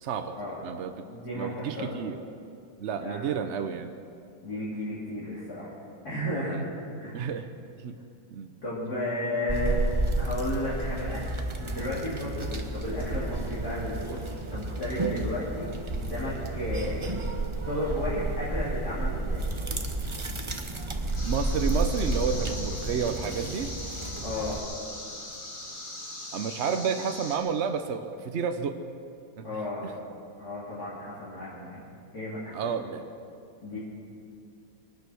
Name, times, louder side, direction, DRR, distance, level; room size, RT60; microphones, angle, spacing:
voice 1, 0.0-0.4 0.6-0.9 1.3-2.2 2.8-3.9 7.1-7.5 7.8-8.0 8.3-8.5 21.2-23.7 26.3-28.8 29.4-29.6 32.5-33.0 33.7-33.8, right 6 dB, 70° right, 7 dB, 0.6 m, -30 dB
voice 2, 1.1-1.9 3.0-3.4 4.4-5.7 6.0-6.7 7.0-7.3 8.6-9.8 10.2-11.3 11.6-17.0 17.7-19.5 24.2-24.6 29.4-30.0 30.4-31.9 32.1-32.5 33.6-33.8, left 1 dB, 50° left, -9 dB, 3.2 m, -33 dB
sound 1, 9.5-24.6, right 2 dB, 30° right, 0.5 m, -31 dB
sound 2, 21.1-27.4, left 1 dB, 65° left, 3.6 m, -40 dB
23.0 x 9.6 x 6.3 m, 2.4 s
omnidirectional pair, 2.1 m